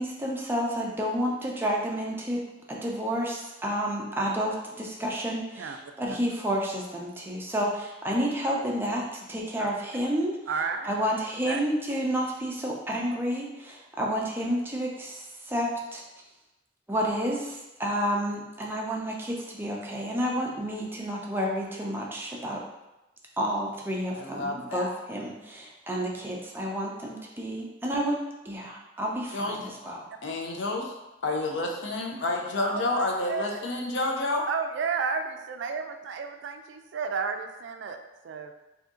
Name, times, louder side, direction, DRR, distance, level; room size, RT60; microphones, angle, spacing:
voice 1, 0.0-2.4 2.7-10.3 10.8-16.0 16.9-22.6 23.4-30.1, equal, 10° right, -2 dB, 0.5 m, -30 dB
voice 2, 10.5-10.9 11.4-11.6 14.0-14.1 32.6-33.6 34.5-38.0 38.2-38.5, right 5 dB, 70° right, 6 dB, 0.3 m, -32 dB
voice 3, 24.1-24.9 29.3-29.6 30.2-30.9 31.2-34.5, left 2 dB, 80° left, 1 dB, 0.6 m, -29 dB
2.7 x 2.6 x 3.6 m, 0.99 s
head